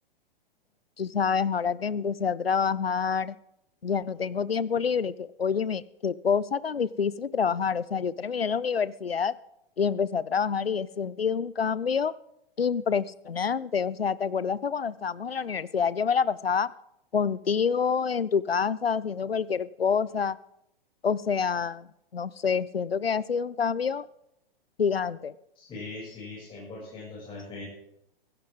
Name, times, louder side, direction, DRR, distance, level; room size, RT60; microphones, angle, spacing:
voice 1, 1.0-3.3 3.8-9.3 9.8-12.1 12.6-16.7 17.1-20.4 21.0-24.1 24.8-25.3, left 6 dB, 90° left, 19 dB, 0.5 m, -27 dB
voice 2, 25.6-27.6, left 3 dB, 15° left, -7 dB, 7.2 m, -40 dB
16.5 x 15.0 x 3.7 m, 0.81 s
figure-of-eight pair, 110°, 29 cm